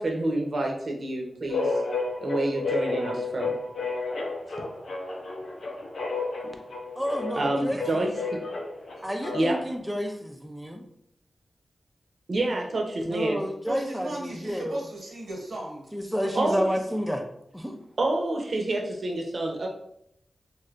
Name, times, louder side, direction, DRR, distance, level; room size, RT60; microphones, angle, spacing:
voice 1, 0.0-1.7 2.2-3.5 7.4-8.4 9.3-9.6 12.3-13.4 16.3-16.6 18.0-19.7, right 2 dB, 55° right, 1 dB, 0.6 m, -27 dB
sound 1, 1.5-9.7, left 3 dB, 80° left, 0.6 m, -31 dB
voice 2, 7.0-7.8 9.0-10.8 13.1-14.8 15.9-17.3 17.5-17.8, equal, ahead, 2 dB, 0.4 m, -30 dB
voice 3, 13.7-16.4 16.9-17.0, right 1 dB, 85° right, -1 dB, 0.9 m, -36 dB
3.2 x 2.6 x 2.4 m, 0.74 s
wide cardioid pair, 100°, 0 cm